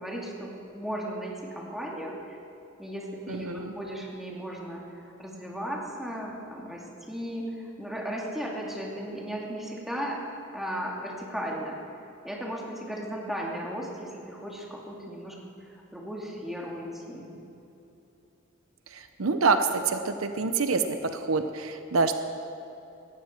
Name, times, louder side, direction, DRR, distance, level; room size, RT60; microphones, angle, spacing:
voice 1, 0.0-2.4 2.8-4.8 5.2-10.2 10.5-11.8 12.2-15.4 15.6-17.3, equal, ahead, -3 dB, 2.3 m, -36 dB
voice 2, 3.3-3.7 19.2-19.6 19.9-21.0 21.3-22.2, right 4 dB, 85° right, 8 dB, 0.8 m, -26 dB
18.0 x 14.0 x 4.4 m, 2.9 s
head